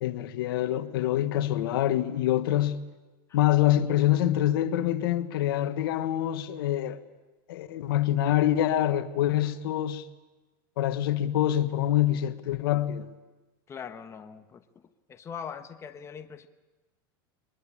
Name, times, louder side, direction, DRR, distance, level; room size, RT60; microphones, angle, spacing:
voice 1, 0.0-2.8 3.3-7.0 7.5-10.1 10.8-13.1, left 12 dB, 75° left, 1.4 m, -25 dB
voice 2, 13.7-14.6 15.1-16.5, left 7 dB, 25° left, 1.2 m, -41 dB
23.0 x 21.0 x 8.7 m
supercardioid pair, 125°, 12 cm